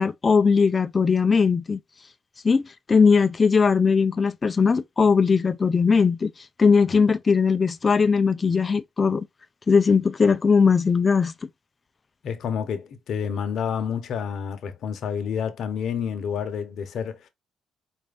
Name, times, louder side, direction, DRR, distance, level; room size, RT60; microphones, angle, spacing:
voice 1, 0.0-1.8 2.4-6.3 6.6-9.2 9.7-11.3, left 5 dB, 35° left, 0.4 m, -19 dB
voice 2, 12.2-17.3, left 7 dB, 70° left, 0.8 m, -29 dB
4.3 x 2.5 x 3.4 m
cardioid pair, 90°, 0 cm